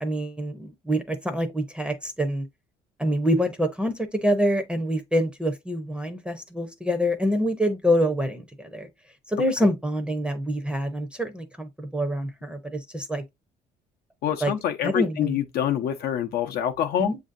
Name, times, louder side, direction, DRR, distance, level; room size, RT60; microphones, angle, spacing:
voice 1, 0.0-2.4 3.0-8.9 9.3-13.2 14.4-14.5 14.8-15.4 17.0-17.2, equal, 5° right, 0.6 m, -26 dB
voice 2, 14.2-17.1, left 10 dB, 65° left, 0.6 m, -26 dB
7.1 x 2.7 x 2.5 m
cardioid pair, 110°, 17 cm